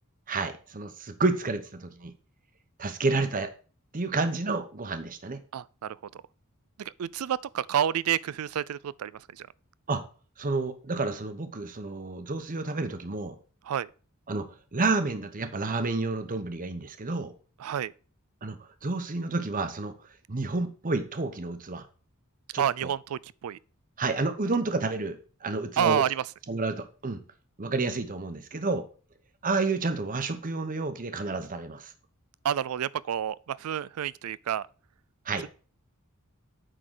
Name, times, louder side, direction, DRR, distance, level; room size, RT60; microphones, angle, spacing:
voice 1, 0.3-2.1 2.8-3.5 3.9-5.4 9.9-10.0 10.4-13.3 14.3-17.3 18.4-19.9 20.3-21.8 22.5-22.6 24.0-26.0 26.5-27.2 27.6-28.8 29.4-31.9 35.3-35.4, right 3 dB, 40° right, 0.9 m, -30 dB
voice 2, 5.5-6.2 6.8-9.5 13.6-13.9 17.6-17.9 22.6-23.6 25.8-26.2 32.4-34.7, right 9 dB, 90° right, 0.4 m, -29 dB
8.9 x 3.9 x 6.3 m
head